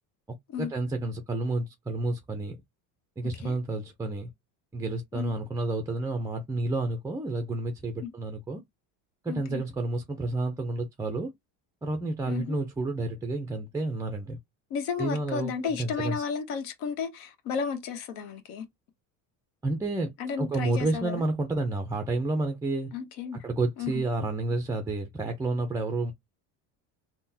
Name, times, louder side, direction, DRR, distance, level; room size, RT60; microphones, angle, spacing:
voice 1, 0.6-2.6 3.2-4.3 4.7-8.6 9.2-11.3 11.8-14.4 15.0-16.2 19.6-20.1 20.4-22.9 23.4-26.1, right 2 dB, 10° right, 0.3 m, -30 dB
voice 2, 9.3-9.6 12.3-12.6 14.7-18.6 20.2-21.2 22.9-23.4 23.8-24.0, left 6 dB, 75° left, 1.0 m, -33 dB
3.6 x 2.1 x 2.7 m
cardioid pair, 110°, 40 cm